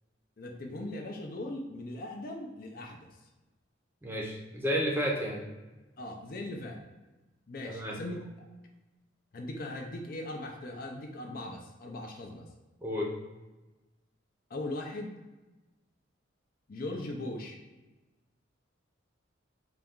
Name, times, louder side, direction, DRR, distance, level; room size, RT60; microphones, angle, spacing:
voice 1, 0.4-3.1 6.0-6.8 7.5-8.2 9.3-12.5 14.5-15.1 16.7-17.6, left 1 dB, 50° left, 2 dB, 0.5 m, -39 dB
voice 2, 4.0-5.4 7.6-8.0 12.8-13.1, equal, 10° right, -2 dB, 0.6 m, -31 dB
4.0 x 2.3 x 3.6 m, 1.1 s
head